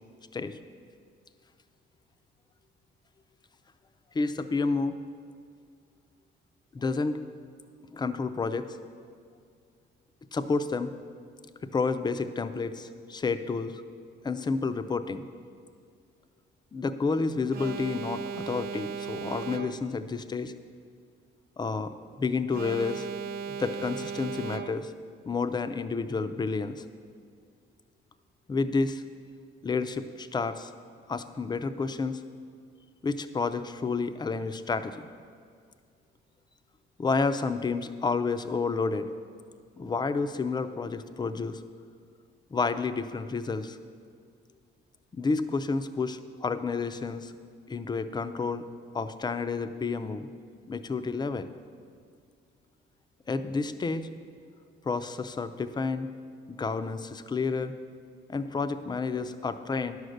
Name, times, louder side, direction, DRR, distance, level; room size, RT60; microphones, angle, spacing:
voice 1, 4.1-4.9 6.7-7.2 7.9-8.6 10.3-10.9 11.7-13.8 14.2-15.3 16.7-20.5 21.6-23.1 23.6-24.9 25.3-26.8 28.5-29.0 29.6-30.7 31.1-32.2 33.0-35.1 37.0-39.1 39.8-41.6 42.5-43.8 45.1-47.3 47.7-48.6 48.9-50.3 50.7-51.5 53.3-54.1 54.8-56.1 56.5-57.7 58.3-60.0, left 4 dB, 20° left, 10 dB, 0.5 m, -30 dB
Alarm, 17.5-20.1 22.5-25.1, right 7 dB, 45° right, 0.5 m, -37 dB
10.5 x 6.4 x 6.5 m, 2.2 s
cardioid pair, 115°, 20 cm